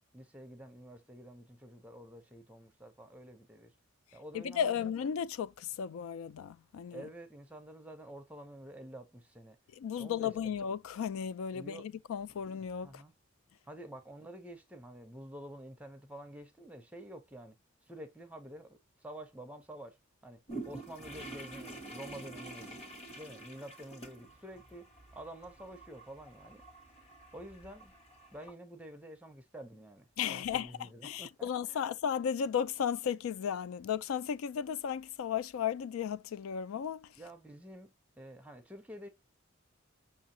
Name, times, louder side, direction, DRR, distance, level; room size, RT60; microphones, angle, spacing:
voice 1, 0.1-3.7 4.1-4.9 6.9-9.6 10.0-10.3 11.5-11.9 12.8-13.1 13.7-17.6 17.9-20.0 20.2-22.8 23.2-26.6 27.3-27.9 28.3-31.9 37.2-39.1, right 1 dB, 5° right, 0.6 m, -49 dB
voice 2, 4.3-7.1 9.7-13.0 30.2-30.7 31.0-37.1, left 8 dB, 80° left, 0.3 m, -35 dB
sound 1, 20.5-28.5, right 2 dB, 30° left, 1.5 m, -48 dB
5.7 x 2.8 x 2.7 m
head